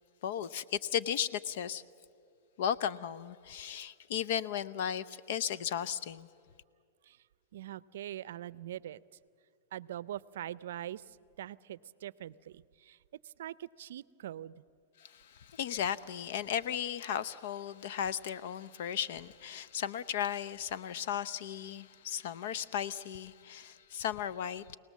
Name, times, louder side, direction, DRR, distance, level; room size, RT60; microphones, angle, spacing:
voice 1, 0.2-1.8 2.6-6.3 15.0-24.8, left 9 dB, 65° left, 0.7 m, -35 dB
voice 2, 7.5-9.0 9.7-13.0 13.2-14.6, right 12 dB, 75° right, 0.5 m, -43 dB
26.0 x 18.5 x 7.4 m
hypercardioid pair, 125°, 0 cm